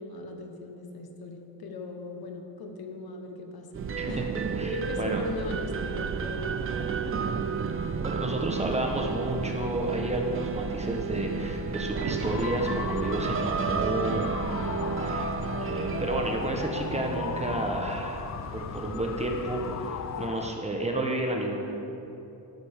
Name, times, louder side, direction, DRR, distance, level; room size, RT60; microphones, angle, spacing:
voice 1, 0.0-4.3 4.6-7.4 7.8-8.0, left 3 dB, 60° left, 3 dB, 1.3 m, -40 dB
sound 1, 3.7-20.3, right 5 dB, 35° right, 0.5 m, -32 dB
voice 2, 4.6-5.2 8.0-21.5, right 1 dB, 15° right, 1 dB, 1.1 m, -31 dB
sound 2, 12.2-20.5, left 9 dB, 45° left, 0.4 m, -37 dB
13.0 x 12.0 x 3.6 m, 3.0 s
cardioid pair, 140°, 42 cm